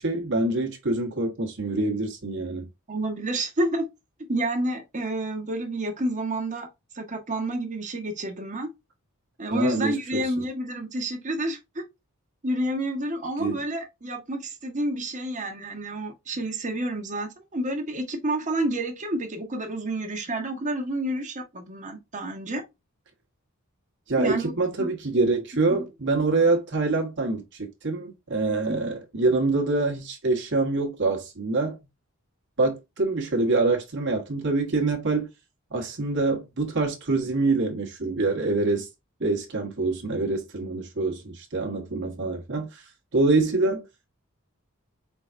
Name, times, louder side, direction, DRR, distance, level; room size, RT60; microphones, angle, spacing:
voice 1, 0.0-2.7 9.5-10.3 13.4-13.6 24.1-31.8 32.6-35.3 35.7-38.9 39.2-42.8 43.1-43.9, right 3 dB, 55° right, 1.2 m, -25 dB
voice 2, 2.9-3.9 4.3-6.7 6.9-8.7 9.4-11.8 12.4-22.6 24.2-24.9 25.7-25.8 28.7-28.9, right 1 dB, 35° right, 1.1 m, -29 dB
4.5 x 3.9 x 2.5 m
head